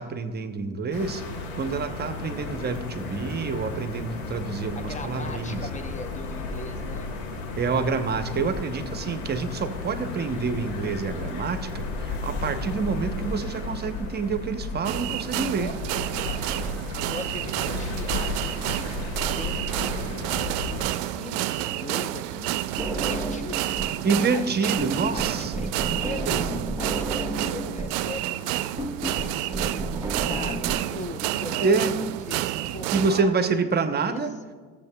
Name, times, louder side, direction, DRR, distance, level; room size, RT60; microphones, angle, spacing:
voice 1, 0.0-5.7 7.6-15.7 24.0-25.5 25.9-26.0 26.3-26.4 31.6-31.9 32.9-34.3, right 4 dB, 30° right, 9 dB, 0.8 m, -27 dB
sound 1, 0.9-20.8, left 3 dB, 80° left, 2.5 m, -34 dB
voice 2, 4.8-7.1 15.4-19.1 19.4-23.7 24.3-24.8 25.1-26.4 26.8-30.6 30.9-31.9 32.2-34.2, left 3 dB, 25° left, 8 dB, 0.7 m, -40 dB
sound 2, 14.9-33.2, right 14 dB, 70° right, 0.5 m, -30 dB
sound 3, 22.8-24.0 24.3-30.8, right 1 dB, 10° right, 1.3 m, -32 dB
16.5 x 7.5 x 2.2 m, 1.5 s
hypercardioid pair, 75°, 32 cm